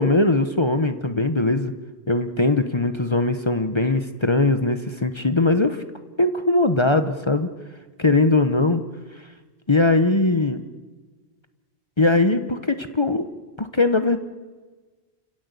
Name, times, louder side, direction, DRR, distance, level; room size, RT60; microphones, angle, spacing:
voice 1, 0.0-1.7 2.1-5.8 6.2-7.5 8.0-8.8 9.7-10.6 12.0-13.2 13.6-14.2, left 2 dB, 25° left, 9 dB, 1.0 m, -20 dB
29.5 x 16.0 x 8.2 m, 1.3 s
omnidirectional pair, 1.1 m